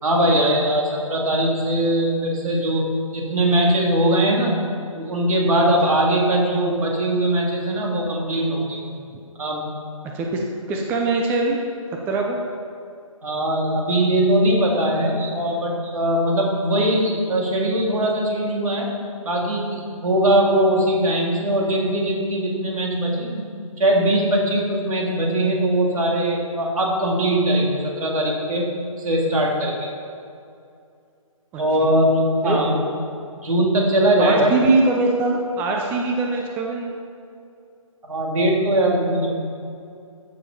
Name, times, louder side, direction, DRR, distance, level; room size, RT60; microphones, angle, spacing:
voice 1, 0.0-4.6 4.9-8.8 9.4-9.7 13.2-18.9 19.2-23.5 23.8-29.9 31.6-32.8 33.4-34.5 38.1-39.3, right 1 dB, 75° right, -1 dB, 3.4 m, -21 dB
voice 2, 10.1-11.6 12.1-12.4 31.5-32.0 32.4-32.6 34.2-36.9, right 3 dB, 10° right, 1 dB, 0.6 m, -22 dB
14.5 x 7.0 x 5.5 m, 2.5 s
hypercardioid pair, 150°, 18 cm